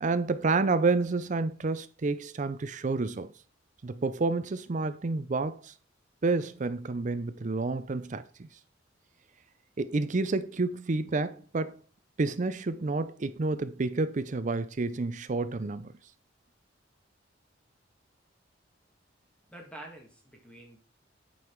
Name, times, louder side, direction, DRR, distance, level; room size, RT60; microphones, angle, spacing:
voice 1, 0.0-3.3 3.8-5.7 6.2-8.2 9.8-11.8 12.2-15.9, right 3 dB, 40° right, 0.5 m, -29 dB
voice 2, 19.5-20.8, right 1 dB, 5° left, 1.8 m, -47 dB
9.4 x 5.5 x 4.5 m
head